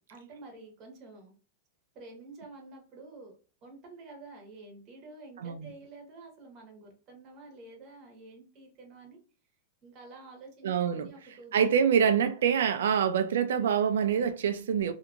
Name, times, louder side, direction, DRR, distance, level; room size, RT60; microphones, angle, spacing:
voice 1, 0.1-1.3 1.9-9.2 9.8-11.5, right 3 dB, 30° right, 1.0 m, -49 dB
voice 2, 5.4-5.7 10.6-11.1 11.5-14.9, right 7 dB, 90° right, 0.3 m, -25 dB
2.7 x 2.5 x 2.4 m
supercardioid pair, 165°, 0 cm